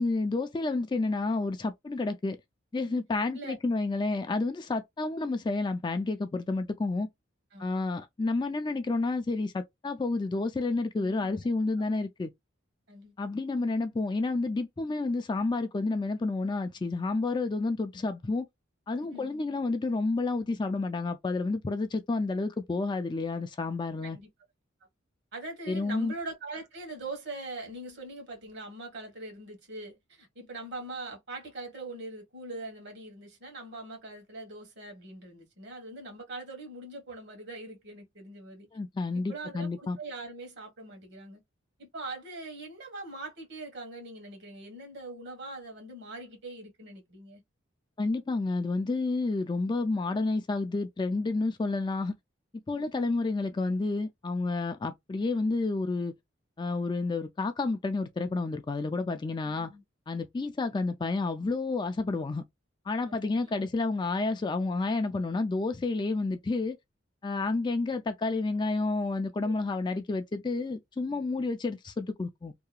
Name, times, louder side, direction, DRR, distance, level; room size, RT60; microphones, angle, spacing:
voice 1, 0.0-2.4 2.7-7.1 7.6-12.3 13.2-18.5 18.9-24.2 25.7-26.1 38.7-40.0 48.0-52.2 52.7-56.1 56.6-59.7 60.1-62.4 62.9-66.8 67.2-72.5, left 3 dB, 25° left, 0.3 m, -30 dB
voice 2, 7.5-7.9 11.0-11.3 12.9-13.1 19.1-19.4 24.0-24.3 25.3-38.7 39.1-41.4 41.8-47.4 52.8-53.1 59.4-59.8 63.0-63.5 69.4-69.5, right 2 dB, 60° right, 1.2 m, -42 dB
2.8 x 2.3 x 2.3 m
head